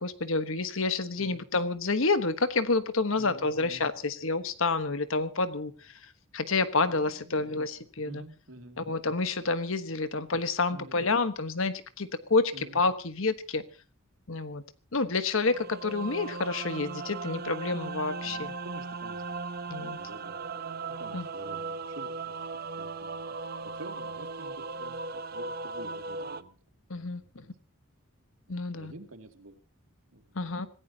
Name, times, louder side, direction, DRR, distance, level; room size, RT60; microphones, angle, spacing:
voice 1, 0.0-8.2 8.8-13.6 14.3-14.6 14.9-18.5 19.7-20.0 21.1-21.3 26.9-27.4 28.5-28.9 30.3-30.7, left 3 dB, 70° left, 1.3 m, -29 dB
voice 2, 3.2-3.8 6.8-7.6 8.0-8.8 10.7-10.9 12.5-12.8 18.2-19.4 19.7-20.4 20.9-22.4 22.7-23.2 23.6-26.6 26.9-27.3 28.5-29.6 30.1-30.4, right 2 dB, 75° right, 2.5 m, -49 dB
sound 1, 15.4-26.4, right 4 dB, 45° right, 0.8 m, -37 dB
26.0 x 16.0 x 2.9 m
head